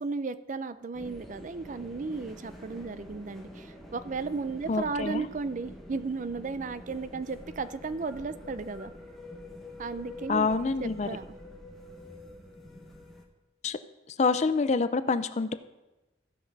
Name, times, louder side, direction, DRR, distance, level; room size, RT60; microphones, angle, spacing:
voice 1, 0.0-8.9 9.8-11.3, right 4 dB, 45° right, 13 dB, 0.4 m, -35 dB
sound 1, 0.9-13.2, left 1 dB, ahead, 1.2 m, -46 dB
voice 2, 4.7-5.2 10.3-11.1 13.6-13.8 14.1-15.5, left 4 dB, 35° left, 12 dB, 0.4 m, -27 dB
15.5 x 5.9 x 4.6 m, 1.1 s
head